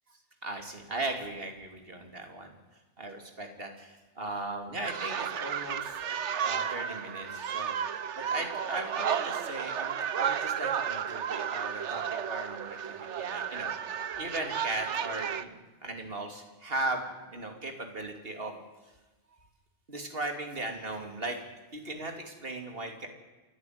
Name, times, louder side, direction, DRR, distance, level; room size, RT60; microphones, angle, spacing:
voice 1, 0.4-2.6 3.0-6.0 6.4-7.8 8.2-13.7 14.1-18.6 19.9-21.4 21.7-23.1, right 2 dB, 50° right, 4 dB, 3.2 m, -37 dB
sound 1, 4.8-15.4, right 8 dB, 75° right, 1.2 m, -33 dB
28.5 x 11.5 x 9.5 m, 1.2 s
omnidirectional pair, 1.2 m